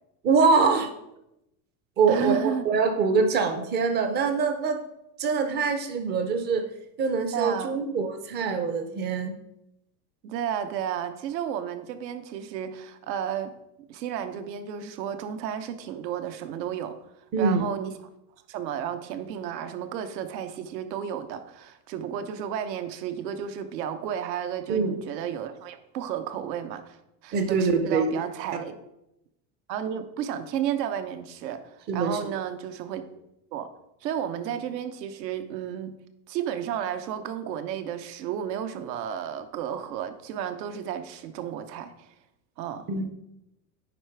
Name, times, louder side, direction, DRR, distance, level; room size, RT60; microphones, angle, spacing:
voice 1, 0.2-0.9 2.0-4.8 5.2-6.7 7.0-9.4 17.3-17.6 24.7-25.0 27.3-28.2 31.9-32.2 42.9-43.1, right 4 dB, 20° right, 8 dB, 0.4 m, -24 dB
voice 2, 2.1-2.7 7.3-7.7 10.2-13.5 13.9-17.0 17.4-17.9 18.5-27.0 27.2-28.8 29.7-33.0 33.5-33.7 34.0-35.9 36.3-42.1 42.6-42.9, right 9 dB, 85° right, 9 dB, 0.9 m, -32 dB
9.8 x 3.4 x 4.5 m, 0.87 s
supercardioid pair, 145°, 49 cm